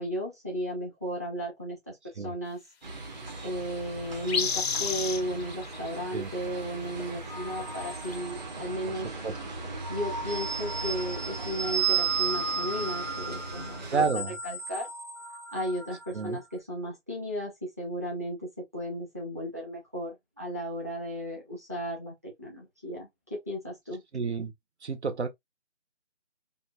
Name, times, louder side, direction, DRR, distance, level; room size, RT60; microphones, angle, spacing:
voice 1, 0.0-2.6 3.4-9.2 9.9-14.0 14.4-14.9 15.5-24.0, equal, 15° right, 0.5 m, -35 dB
sound 1, 2.8-14.1, right 2 dB, 40° right, 1.0 m, -40 dB
sound 2, 4.3-5.9 8.1-8.2, left 6 dB, 65° left, 0.5 m, -29 dB
sound 3, 7.3-8.7 9.6-16.3, right 5 dB, 90° right, 1.3 m, -33 dB
voice 2, 8.9-9.3 13.9-14.4 16.1-16.4 24.1-24.5 24.8-25.3, right 5 dB, 70° right, 0.7 m, -30 dB
3.6 x 2.2 x 2.2 m
figure-of-eight pair, 155°, 35 cm